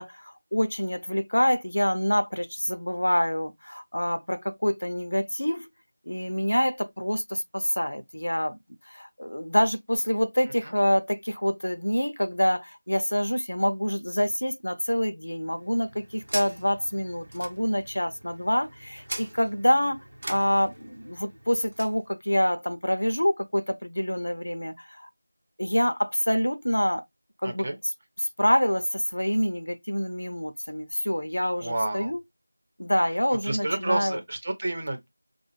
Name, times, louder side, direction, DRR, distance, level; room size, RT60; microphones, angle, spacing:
voice 1, 0.0-5.7 6.1-8.6 8.9-25.1 25.6-27.0 27.4-27.7 28.2-32.2 32.8-34.2, equal, 75° left, 0.6 m, -26 dB
sound 1, 15.4-22.0, right 1 dB, 60° right, 0.8 m, -41 dB
voice 2, 27.4-27.8 31.6-32.1 33.5-35.1, right 2 dB, 35° right, 0.9 m, -29 dB
5.1 x 2.3 x 3.0 m
figure-of-eight pair, 170°, 0 cm